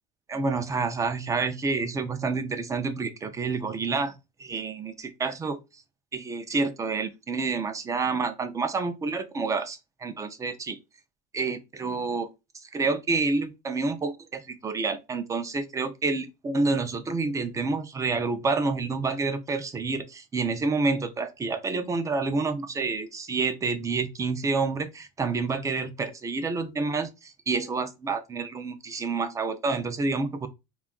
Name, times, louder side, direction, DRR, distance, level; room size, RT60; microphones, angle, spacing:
voice 1, 0.3-5.6 6.1-10.8 11.3-12.3 12.7-30.5, right 4 dB, 15° right, 0.3 m, -28 dB
2.5 x 2.3 x 3.7 m
cardioid pair, 145°, 19 cm